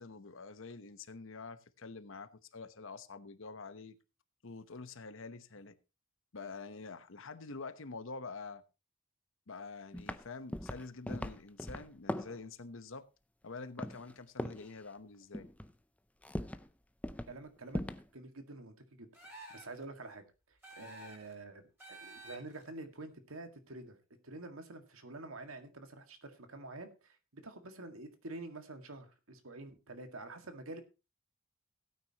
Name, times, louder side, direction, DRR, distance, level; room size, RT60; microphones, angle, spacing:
voice 1, 0.0-4.0 4.4-5.8 6.3-8.6 9.5-13.1 13.4-15.5, left 4 dB, 70° left, 1.0 m, -47 dB
sound 1, 9.9-10.3 10.5-12.4 13.8-14.1 14.4-14.7 15.3-15.7 16.2-16.7 17.0-17.4 17.7-18.1, left 1 dB, 5° left, 0.5 m, -39 dB
voice 2, 17.3-17.8 18.1-24.0 24.2-30.8, right 2 dB, 90° right, 1.9 m, -48 dB
sound 2, 19.1-19.8 20.6-21.3 21.8-22.6, right 1 dB, 10° right, 6.4 m, -51 dB
17.0 x 9.4 x 2.9 m
head